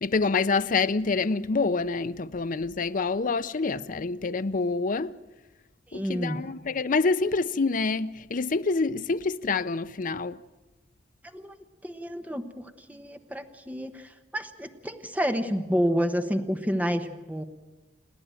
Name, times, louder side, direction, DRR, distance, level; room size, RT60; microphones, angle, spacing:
voice 1, 0.0-5.2 5.9-10.4, left 4 dB, 45° left, 0.6 m, -27 dB
voice 2, 5.9-6.4 11.2-11.6 11.8-17.4, equal, 10° right, 1.0 m, -29 dB
28.0 x 11.0 x 9.0 m
head